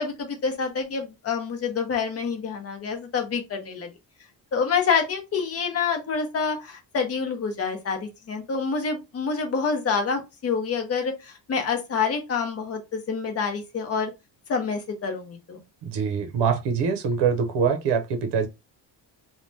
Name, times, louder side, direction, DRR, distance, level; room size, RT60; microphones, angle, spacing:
voice 1, 0.0-3.9 4.5-14.1 14.5-15.6, left 5 dB, 35° left, 0.7 m, -27 dB
voice 2, 15.9-18.5, right 6 dB, 70° right, 0.7 m, -24 dB
3.2 x 2.2 x 2.6 m
cardioid pair, 180°, 43 cm